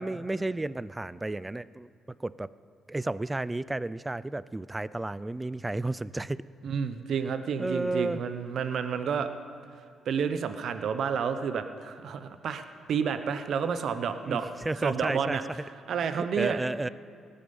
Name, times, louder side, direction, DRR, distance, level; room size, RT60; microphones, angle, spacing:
voice 1, 0.0-1.9 2.2-2.5 2.9-6.4 7.6-8.2 14.2-15.4 16.2-16.9, right 2 dB, 15° right, 18 dB, 0.3 m, -32 dB
voice 2, 6.6-9.3 10.1-12.6 12.9-14.5 14.8-15.4 15.9-16.6, right 7 dB, 65° right, 10 dB, 0.7 m, -30 dB
17.0 x 10.0 x 5.4 m, 2.2 s
cardioid pair, 90°, 0 cm